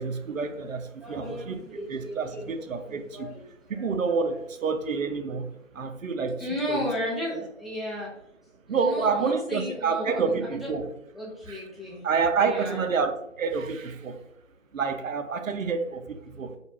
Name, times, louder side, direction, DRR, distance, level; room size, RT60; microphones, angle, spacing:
voice 1, 0.0-0.8 1.1-3.3 3.7-5.5 5.8-6.4 6.7-6.9 8.7-10.9 11.5-11.6 12.0-14.2 14.7-16.5, right 5 dB, 90° right, 0.5 m, -28 dB
voice 2, 1.0-3.9 6.4-8.1 8.7-10.7 11.1-12.1 12.4-12.8 16.3-16.4, left 1 dB, ahead, 0.4 m, -35 dB
2.4 x 2.2 x 3.1 m
figure-of-eight pair, 165°, 39 cm